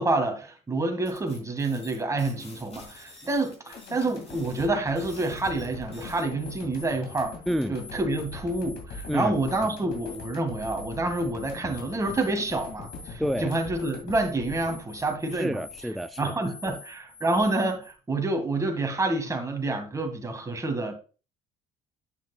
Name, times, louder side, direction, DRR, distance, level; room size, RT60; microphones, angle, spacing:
voice 1, 0.0-7.4 7.7-15.6 16.2-20.9, right 2 dB, 20° right, 2.0 m, -28 dB
sound 1, 1.0-17.9, left 3 dB, 35° left, 2.9 m, -48 dB
sound 2, 3.7-15.9 16.3-16.4, left 3 dB, 70° left, 2.3 m, -43 dB
voice 2, 7.5-7.8 9.1-9.3 13.2-13.5 15.3-16.3 16.6-16.8, equal, ahead, 0.3 m, -29 dB
8.2 x 7.0 x 2.4 m
cardioid pair, 110°, 17 cm